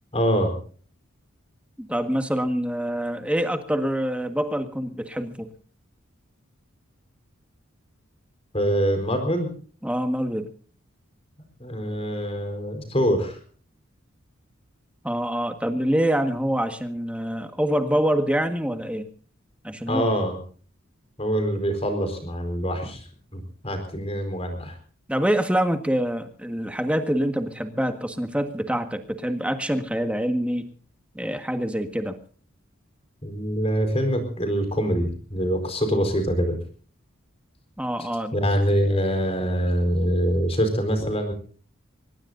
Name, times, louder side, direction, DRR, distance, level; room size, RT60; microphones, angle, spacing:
voice 1, 0.1-0.5 8.5-9.5 11.6-13.4 19.9-20.4 21.2-23.0 23.3-24.7 33.2-36.5 38.3-41.3, equal, 30° left, 6 dB, 4.5 m, -24 dB
voice 2, 1.8-5.5 9.8-10.5 15.0-19.1 19.6-20.0 25.1-30.7 31.1-32.2 37.8-38.3, equal, 5° right, 7 dB, 1.6 m, -25 dB
24.0 x 20.0 x 2.7 m, 0.43 s
head